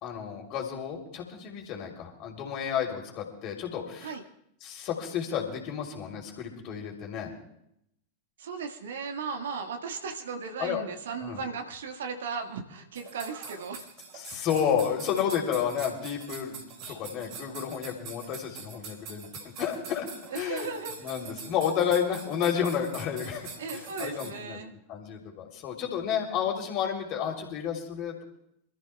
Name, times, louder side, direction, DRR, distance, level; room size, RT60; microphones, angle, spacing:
voice 1, 0.0-4.2 4.6-7.3 10.6-10.8 11.2-11.4 14.1-19.3 19.6-20.1 20.3-24.6 24.9-28.2, left 8 dB, 40° left, 1 dB, 3.3 m, -31 dB
voice 2, 8.4-13.8 20.3-20.9 23.6-24.7, right 5 dB, 60° right, 5 dB, 1.7 m, -36 dB
sound 1, 12.9-24.3, right 5 dB, 45° right, 4.3 m, -44 dB
27.5 x 14.0 x 2.3 m, 0.77 s
figure-of-eight pair, 90°, 0 cm